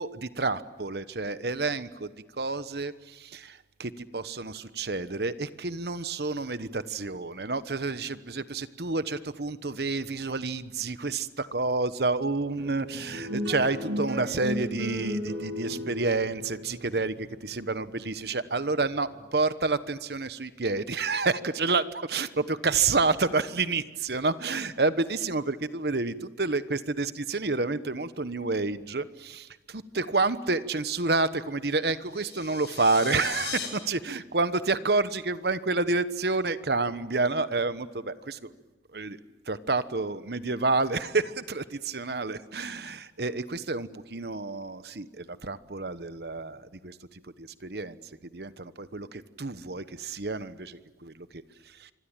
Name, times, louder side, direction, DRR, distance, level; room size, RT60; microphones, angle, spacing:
voice 1, 0.0-38.5 38.9-39.2 39.5-48.0 48.3-51.9, right 3 dB, 65° right, 13 dB, 1.1 m, -29 dB
sound 1, 12.6-19.2, left 1 dB, 90° right, 6.4 m, -35 dB
sound 2, 32.1-33.7, left 7 dB, 70° left, 7.5 m, -37 dB
26.5 x 24.5 x 9.0 m, 1.2 s
head